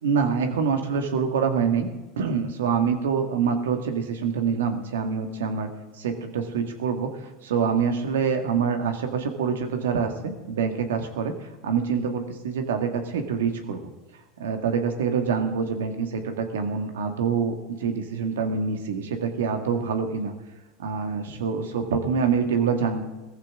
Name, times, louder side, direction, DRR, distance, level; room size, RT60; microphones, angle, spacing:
voice 1, 0.0-1.9 2.2-5.7 6.0-7.1 7.4-11.3 11.6-13.8 14.4-20.3 20.8-23.0, right 6 dB, 85° right, 6 dB, 1.8 m, -25 dB
17.5 x 14.5 x 3.7 m, 1.1 s
hypercardioid pair, 95°, 0 cm